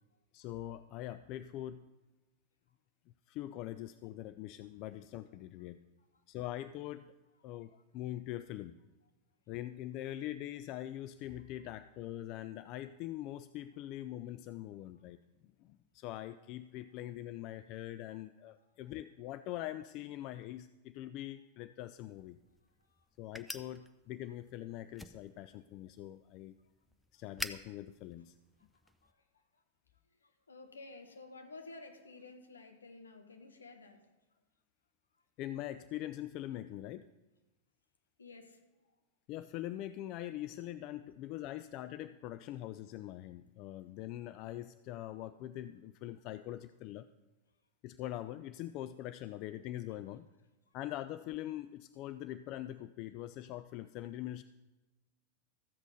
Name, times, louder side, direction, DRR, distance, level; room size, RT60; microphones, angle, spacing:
voice 1, 0.3-1.9 3.3-5.8 6.3-7.1 7.4-8.8 9.5-22.4 23.2-26.5 27.1-28.4 35.4-37.1 39.3-47.1 47.8-50.3 50.7-54.4, left 13 dB, 40° left, 13 dB, 0.4 m, -43 dB
voice 2, 18.6-18.9 22.9-23.0 27.1-27.2 29.0-29.2 30.2-34.0 38.2-38.9 50.7-50.8, left 3 dB, 75° left, 6 dB, 1.5 m, -53 dB
sound 1, 22.0-29.1, left 1 dB, 5° left, 0.6 m, -49 dB
14.0 x 8.2 x 5.2 m, 1.1 s
figure-of-eight pair, 90°, 0 cm